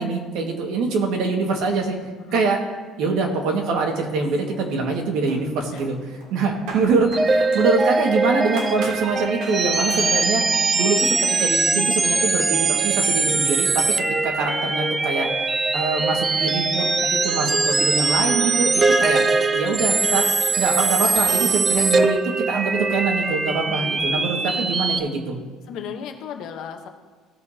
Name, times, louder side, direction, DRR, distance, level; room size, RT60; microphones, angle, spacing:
voice 1, 0.0-2.0 2.3-2.6 3.0-13.9 14.2-15.3 15.7-19.3 19.5-25.4, right 4 dB, 65° right, 2 dB, 1.7 m, -24 dB
sound 1, 4.2-4.9 5.3-8.1 8.6-9.1 9.4-9.6 9.9-10.1, right 3 dB, 85° right, 2.5 m, -39 dB
sound 2, 7.1-25.0, right 3 dB, 20° right, 0.5 m, -21 dB
voice 2, 23.7-24.3 25.7-26.9, left 7 dB, 55° left, 5 dB, 1.0 m, -36 dB
16.5 x 7.0 x 2.8 m, 1.4 s
cardioid pair, 170°, 0 cm